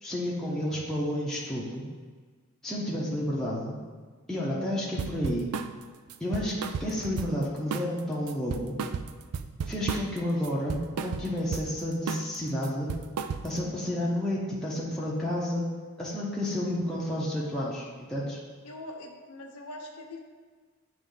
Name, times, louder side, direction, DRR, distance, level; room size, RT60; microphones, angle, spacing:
voice 1, 0.0-1.8 2.6-3.8 4.3-5.5 6.2-8.8 9.6-12.9 13.4-15.6 16.0-18.4, left 1 dB, ahead, -7 dB, 0.7 m, -31 dB
sound 1, 5.0-5.7 6.1-7.4 7.7-8.0 8.3-10.2 10.4-11.7 12.1-12.3 12.6-13.7, right 6 dB, 90° right, 0.4 m, -34 dB
voice 2, 18.6-20.2, left 1 dB, 90° left, 1 dB, 0.8 m, -42 dB
8.6 x 3.1 x 3.8 m, 1.5 s
head